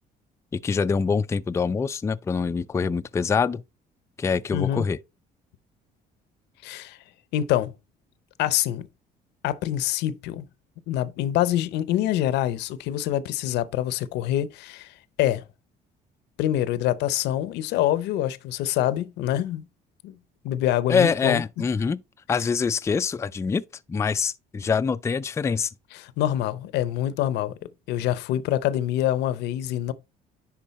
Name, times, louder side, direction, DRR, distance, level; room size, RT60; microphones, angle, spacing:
voice 1, 0.5-3.6 4.2-5.0 20.9-22.0 22.3-23.6 23.9-25.7, left 5 dB, 15° left, 0.3 m, -24 dB
voice 2, 4.5-4.9 6.6-7.0 7.3-7.7 8.4-8.9 9.4-10.5 10.9-15.4 16.4-19.7 20.0-20.2 20.4-21.6 26.2-27.5 27.9-29.9, left 12 dB, 85° left, 0.7 m, -25 dB
10.5 x 3.8 x 4.1 m
cardioid pair, 110°, 17 cm